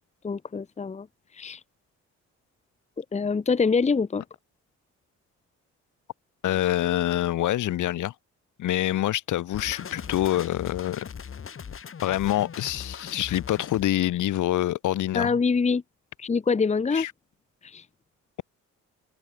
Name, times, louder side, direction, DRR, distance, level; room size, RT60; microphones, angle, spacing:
voice 1, 0.2-1.1 1.3-1.6 3.0-4.2 15.1-15.8 16.2-17.1 17.6-17.8, left 5 dB, 25° left, 0.9 m, -25 dB
voice 2, 6.4-8.1 8.6-11.1 12.0-15.4 16.9-17.1, left 13 dB, 80° left, 2.7 m, -26 dB
sound 1, 9.5-13.8, left 7 dB, 45° left, 3.4 m, -39 dB
cardioid pair, 90°, 30 cm